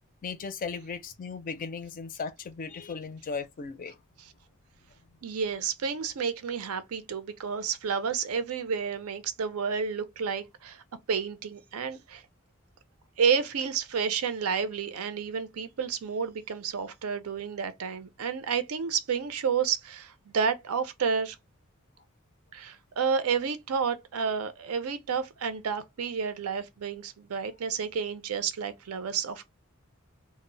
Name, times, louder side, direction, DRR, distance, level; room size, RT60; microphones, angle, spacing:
voice 1, 0.2-4.0, left 5 dB, 40° left, 0.4 m, -36 dB
voice 2, 5.2-12.2 13.2-21.4 22.5-29.5, right 6 dB, 80° right, 0.5 m, -30 dB
2.1 x 2.0 x 3.7 m
head